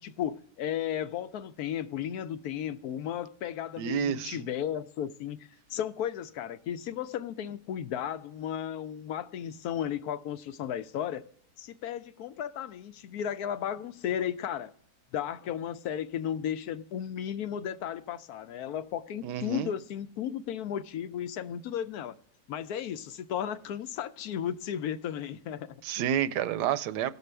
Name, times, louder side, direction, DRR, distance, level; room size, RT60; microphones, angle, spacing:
voice 1, 0.0-11.3 11.6-14.7 15.1-22.1 22.5-25.8, left 9 dB, 70° left, 1.0 m, -34 dB
voice 2, 3.8-4.4 19.2-19.7 25.8-27.1, right 9 dB, 85° right, 1.2 m, -29 dB
18.0 x 6.7 x 3.3 m
omnidirectional pair, 1.8 m